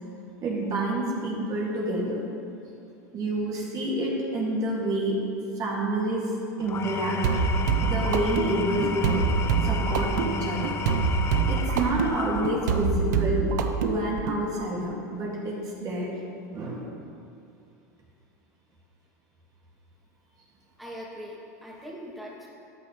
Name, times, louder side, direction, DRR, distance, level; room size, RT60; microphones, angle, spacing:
voice 1, 0.4-2.2 3.1-5.2 5.6-7.2 7.8-9.3 9.6-10.8 11.4-13.5 13.8-16.2 16.5-16.9, right 1 dB, 40° right, -3 dB, 2.1 m, -28 dB
Engine / Tools, 6.6-13.0, left 5 dB, 30° left, 0.7 m, -33 dB
sound 1, 7.2-14.4, right 5 dB, 75° right, 0.8 m, -25 dB
voice 2, 20.8-22.5, equal, ahead, -5 dB, 2.2 m, -41 dB
13.5 x 8.7 x 3.1 m, 2.6 s
hypercardioid pair, 100°, 9 cm